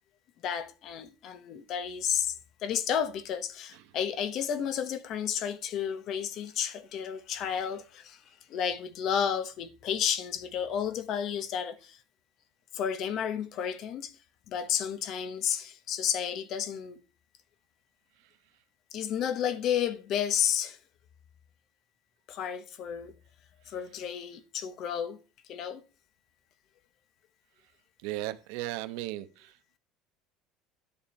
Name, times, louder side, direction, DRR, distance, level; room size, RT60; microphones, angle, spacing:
voice 1, 0.4-8.2 8.5-12.0 12.7-14.1 14.5-17.0 18.9-20.8 22.3-23.1 23.7-25.2 25.5-25.8, left 8 dB, 50° left, 1.1 m, -32 dB
voice 2, 28.0-29.5, right 16 dB, 80° right, 0.9 m, -36 dB
10.5 x 7.2 x 4.3 m
cardioid pair, 145°, 0 cm